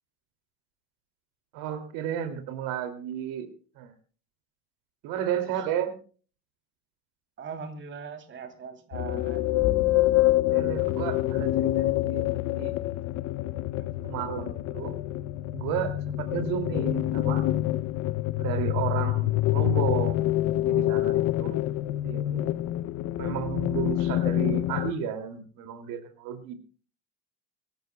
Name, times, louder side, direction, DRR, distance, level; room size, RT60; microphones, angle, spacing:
voice 1, 1.5-3.5 3.8-3.9 5.0-5.9 10.5-12.2 12.6-12.7 14.0-14.9 15.5-17.4 18.4-20.2 20.5-21.6 22.0-22.6 23.2-26.5, right 9 dB, 75° right, 8 dB, 2.6 m, -32 dB
voice 2, 7.4-9.4 13.8-13.9, right 5 dB, 35° right, 7 dB, 2.9 m, -40 dB
sound 1, 8.9-24.9, left 15 dB, 50° left, 0.6 m, -26 dB
Bowed string instrument, 9.6-16.0, left 10 dB, 90° left, 4.2 m, -43 dB
24.5 x 14.0 x 2.2 m, 0.39 s
cardioid pair, 150°, 34 cm